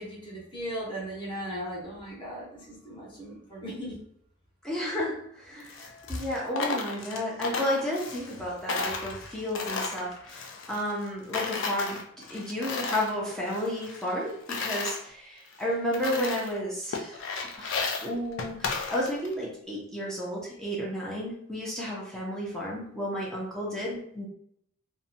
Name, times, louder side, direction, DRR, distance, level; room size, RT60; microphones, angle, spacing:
voice 1, 0.0-3.9 5.8-6.2, equal, 25° left, -6 dB, 0.8 m, -37 dB
voice 2, 4.6-12.0 12.3-24.3, equal, 5° left, -5 dB, 0.4 m, -32 dB
Coin (dropping), 5.6-8.4 8.7-11.1 11.3-13.1 13.5-15.0 15.5-15.6 15.9-16.6 16.9-19.3, left 4 dB, 60° left, 0.4 m, -34 dB
2.6 x 2.1 x 2.6 m, 0.69 s
head